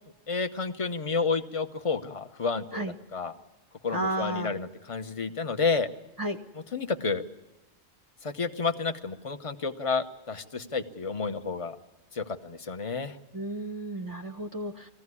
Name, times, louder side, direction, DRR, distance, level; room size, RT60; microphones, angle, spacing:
voice 1, 0.3-3.3 3.8-5.9 6.7-7.2 8.2-11.8 12.1-13.2, left 4 dB, 30° left, 9 dB, 0.9 m, -30 dB
voice 2, 3.9-4.5 6.2-6.4 13.3-14.9, right 1 dB, 20° right, 7 dB, 0.8 m, -32 dB
21.0 x 15.5 x 9.7 m, 1.1 s
omnidirectional pair, 1.3 m